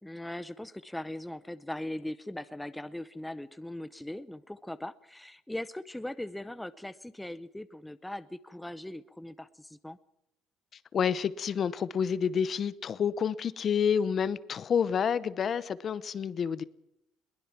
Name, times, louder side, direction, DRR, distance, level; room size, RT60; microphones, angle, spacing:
voice 1, 0.0-10.0, left 1 dB, 5° left, 0.7 m, -40 dB
voice 2, 10.9-16.6, left 7 dB, 35° left, 0.8 m, -29 dB
22.0 x 20.0 x 6.0 m
cardioid pair, 145°, 0 cm